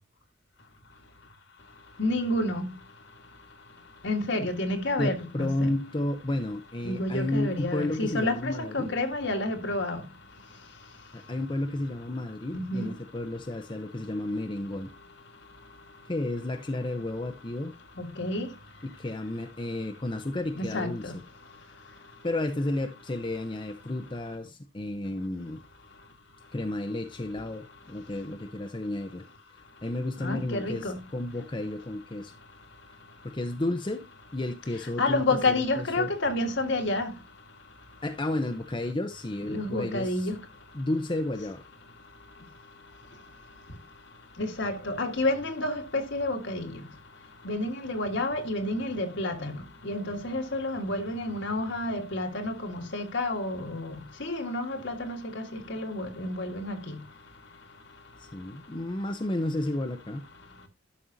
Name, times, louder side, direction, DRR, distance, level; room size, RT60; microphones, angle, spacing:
voice 1, 2.0-2.7 4.0-5.7 6.8-10.0 12.5-12.9 18.0-18.5 20.6-21.1 30.2-31.0 35.0-37.1 39.5-40.4 44.4-46.8 47.4-49.5 49.8-53.9 54.2-57.0, left 2 dB, 65° left, 1.7 m, -30 dB
voice 2, 5.0-8.9 11.1-14.9 16.1-17.8 18.8-21.2 22.2-25.6 26.5-29.2 29.8-32.3 33.2-36.1 38.0-40.3 40.7-41.6 58.2-60.2, left 1 dB, 25° left, 0.7 m, -32 dB
11.5 x 6.6 x 2.7 m
head